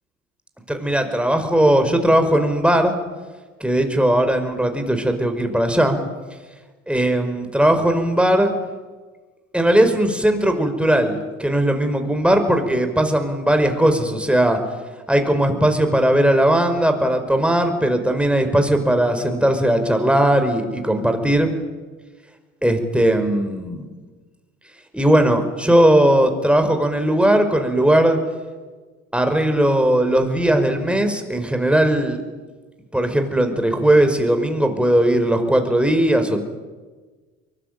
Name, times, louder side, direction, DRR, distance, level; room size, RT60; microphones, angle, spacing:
voice 1, 0.7-2.9 3.6-6.0 6.9-8.5 9.5-14.6 15.1-21.5 22.6-23.9 24.9-28.2 29.1-32.2 32.9-36.4, right 1 dB, 5° right, 6 dB, 5.3 m, -18 dB
23.5 x 21.5 x 9.2 m, 1.3 s
hypercardioid pair, 55°, 35 cm